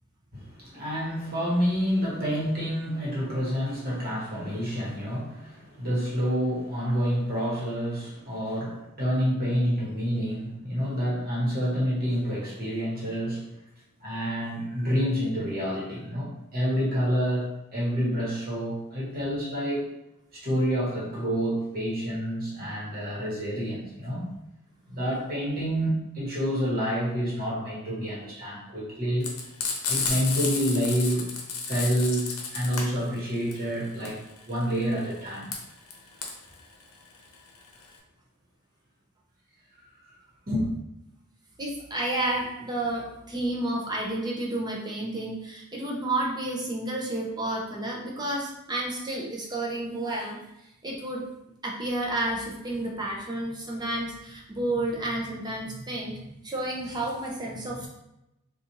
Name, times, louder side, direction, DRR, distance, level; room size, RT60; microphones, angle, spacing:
voice 1, 0.3-13.5 14.0-19.9 20.3-24.2 24.9-29.3 29.9-31.3 31.7-34.2 34.5-35.5 40.5-40.7, equal, 45° right, -5 dB, 1.3 m, -28 dB
Frying (food), 29.2-38.0, left 5 dB, 75° left, 0.7 m, -32 dB
voice 2, 41.6-50.4 50.8-51.2 51.6-57.9, right 1 dB, 20° right, -2 dB, 0.6 m, -31 dB
4.1 x 2.4 x 2.9 m, 0.88 s
head